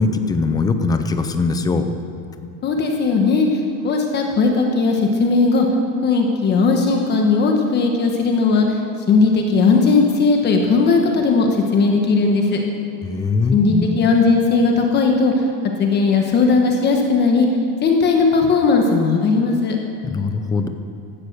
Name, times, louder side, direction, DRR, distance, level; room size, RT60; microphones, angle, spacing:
voice 1, 0.0-1.9 13.0-14.0 20.0-20.7, left 4 dB, 10° left, 8 dB, 0.5 m, -21 dB
voice 2, 2.6-5.7 6.0-8.8 9.1-12.6 13.5-15.4 15.8-17.5 17.8-19.8, left 4 dB, 25° left, 2 dB, 1.2 m, -17 dB
15.5 x 12.5 x 6.6 m, 2.7 s
cardioid pair, 180°, 38 cm